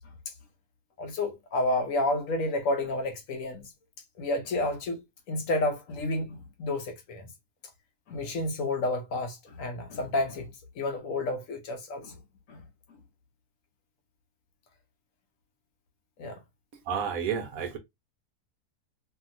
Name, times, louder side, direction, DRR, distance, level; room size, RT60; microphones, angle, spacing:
voice 1, 1.0-3.6 4.2-7.2 8.1-10.5 10.8-12.1 12.5-12.6 16.2-16.4, left 2 dB, 65° left, 1.0 m, -30 dB
voice 2, 16.7-17.8, right 7 dB, 70° right, 1.0 m, -31 dB
2.8 x 2.7 x 2.4 m
omnidirectional pair, 1.7 m